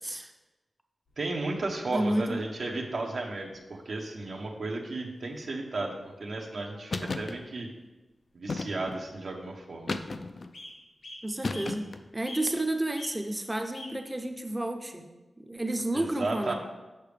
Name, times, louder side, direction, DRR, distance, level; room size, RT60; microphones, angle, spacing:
voice 1, 0.0-0.3 1.9-2.4 11.2-11.9 12.1-15.0 15.4-16.5, right 1 dB, 15° right, 5 dB, 0.6 m, -31 dB
sound 1, 1.1-2.0 3.2-3.3 3.5-3.6 4.3-4.6 4.9-5.0 5.2-5.4 5.8-6.0 7.0-7.1 7.5-7.6 8.6-8.7 9.0-9.5 9.9-10.0 10.5-10.7 11.0-11.7 12.2-12.6 12.9-13.1 13.7-13.9 14.7-14.8, left 1 dB, 90° left, 1.5 m, -45 dB
voice 2, 1.2-7.7 8.3-9.9 15.9-16.5, right 2 dB, 65° right, 0 dB, 0.8 m, -34 dB
sound 2, 6.9-7.3 8.5-9.0 9.9-10.5 11.4-12.1, left 3 dB, 55° left, 0.3 m, -34 dB
6.6 x 5.8 x 3.3 m, 1.1 s
wide cardioid pair, 120°, 0 cm